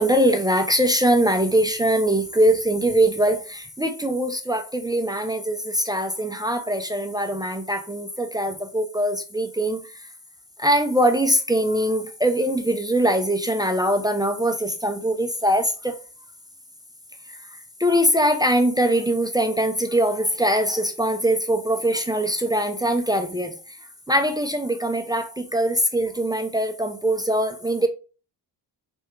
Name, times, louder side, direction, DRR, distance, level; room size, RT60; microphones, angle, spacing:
voice 1, 0.0-9.8 10.6-16.0 17.8-23.5 24.1-27.9, right 1 dB, 10° right, 0.6 m, -22 dB
3.5 x 3.4 x 4.4 m
cardioid pair, 80°, 44 cm